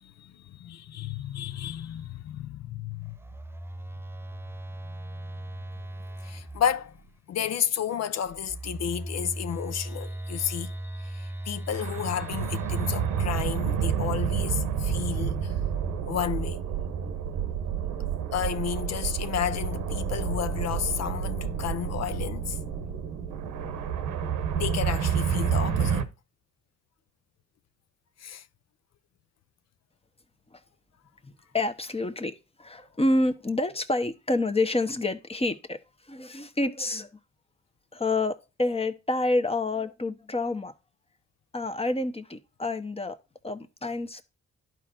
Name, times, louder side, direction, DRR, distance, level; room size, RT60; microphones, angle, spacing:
voice 1, 0.0-3.2 4.8-5.3 6.2-7.0 7.3-15.5 16.1-16.6 18.3-22.6 24.5-26.1 28.2-28.5, left 9 dB, 60° left, 0.5 m, -32 dB
Telephone, 3.1-7.1 8.2-13.9, right 1 dB, 10° right, 0.3 m, -38 dB
sound 1, 11.7-26.0, right 7 dB, 85° right, 0.8 m, -29 dB
voice 2, 31.2-35.8 36.1-37.1 37.9-40.7 41.5-43.2 43.4-44.2, left 2 dB, 20° left, 1.0 m, -28 dB
11.5 x 4.4 x 2.5 m
supercardioid pair, 60°, 30 cm